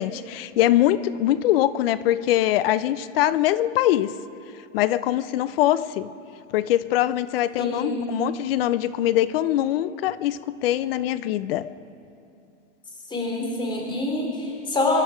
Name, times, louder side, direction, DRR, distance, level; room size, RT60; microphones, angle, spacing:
voice 1, 0.0-4.2 4.7-6.1 6.5-11.7, left 13 dB, 50° left, 16 dB, 0.6 m, -23 dB
voice 2, 7.6-8.0 13.1-15.0, left 2 dB, 15° left, -1 dB, 3.5 m, -26 dB
24.5 x 11.5 x 5.0 m, 2.6 s
hypercardioid pair, 135°, 36 cm